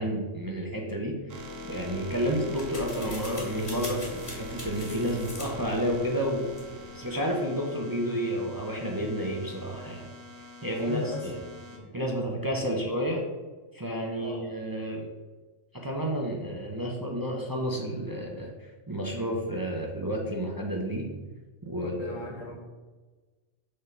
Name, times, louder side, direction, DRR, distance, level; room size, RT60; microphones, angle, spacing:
voice 1, 0.0-1.4 1.7-6.5 6.9-10.0 10.6-11.4 11.9-13.2 13.7-15.0 15.8-21.1 21.6-22.5, equal, 20° right, -1 dB, 0.8 m, -31 dB
sound 1, 1.3-11.8, left 2 dB, 85° right, 1.3 m, -43 dB
sound 2, 1.8-7.1, left 1 dB, 25° left, 1.7 m, -44 dB
voice 2, 10.7-11.4 11.7-11.9 12.7-12.8 14.2-14.4 21.8-22.6, left 3 dB, 80° left, -2 dB, 2.0 m, -39 dB
6.5 x 3.7 x 5.7 m, 1.3 s
omnidirectional pair, 1.3 m